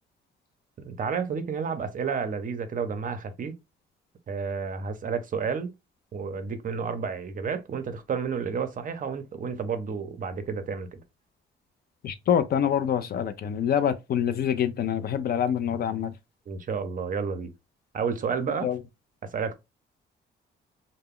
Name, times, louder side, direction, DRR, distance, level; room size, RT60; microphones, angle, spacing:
voice 1, 0.8-3.5 4.3-5.7 6.1-11.0 16.5-17.5 17.9-18.7 19.2-19.5, right 6 dB, 40° right, 0.6 m, -31 dB
voice 2, 12.0-16.1 18.5-18.8, left 9 dB, 50° left, 0.4 m, -26 dB
2.2 x 2.0 x 3.6 m
cardioid pair, 90°, 20 cm